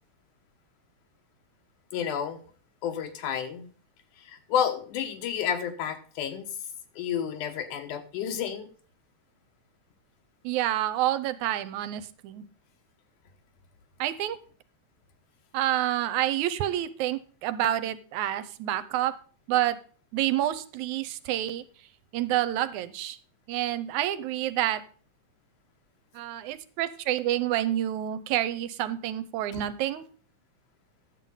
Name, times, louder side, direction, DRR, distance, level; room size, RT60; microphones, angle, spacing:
voice 1, 1.9-2.4 2.8-3.7 4.2-6.5 7.0-8.7 29.5-29.6, left 8 dB, 90° left, 6 dB, 2.7 m, -30 dB
voice 2, 10.4-12.4 14.0-14.4 15.5-19.1 19.5-19.8 20.1-21.6 22.1-23.2 23.5-24.8 26.2-30.0, right 13 dB, 85° right, 13 dB, 2.1 m, -28 dB
10.5 x 7.6 x 5.5 m, 0.42 s
omnidirectional pair, 3.5 m